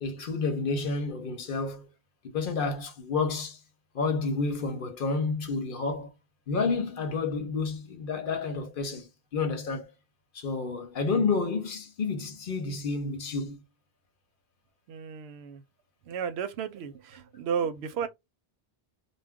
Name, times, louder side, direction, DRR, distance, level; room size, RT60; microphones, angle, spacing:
voice 1, 0.0-1.9 2.3-3.6 3.9-6.1 6.5-9.9 10.3-13.6, left 4 dB, 60° left, 0.8 m, -30 dB
voice 2, 14.9-15.6 16.1-18.1, right 7 dB, 90° right, 0.8 m, -33 dB
2.2 x 2.1 x 3.5 m
omnidirectional pair, 1.1 m